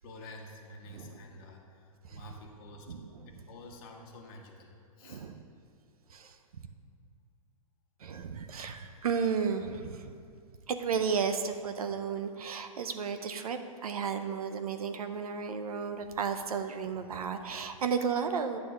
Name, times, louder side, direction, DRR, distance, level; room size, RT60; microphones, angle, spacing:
voice 1, 0.0-3.0 3.3-5.3, left 2 dB, 40° left, 1 dB, 1.1 m, -49 dB
voice 2, 2.9-3.3 5.0-5.4 6.1-6.7 8.0-10.2 10.7-18.6, right 6 dB, 90° right, 8 dB, 0.6 m, -33 dB
9.0 x 3.5 x 6.4 m, 2.2 s
hypercardioid pair, 140°, 18 cm